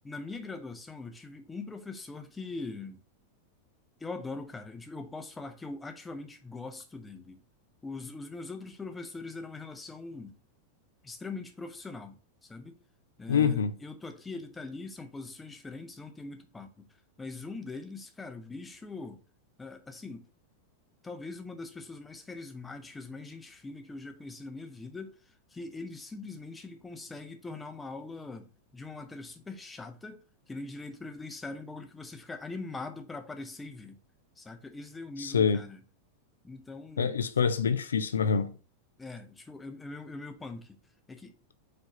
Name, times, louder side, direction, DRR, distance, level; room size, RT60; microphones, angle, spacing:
voice 1, 0.0-3.0 4.0-7.4 7.8-10.4 11.0-12.8 13.2-16.9 17.2-19.2 19.6-20.3 21.0-34.0 34.4-35.8 36.4-37.6 39.0-40.8 41.1-41.3, left 3 dB, 10° left, 1.0 m, -42 dB
voice 2, 13.3-13.8 35.2-35.7 37.0-38.5, left 6 dB, 70° left, 0.6 m, -26 dB
4.9 x 3.7 x 5.4 m
figure-of-eight pair, 90°, 0 cm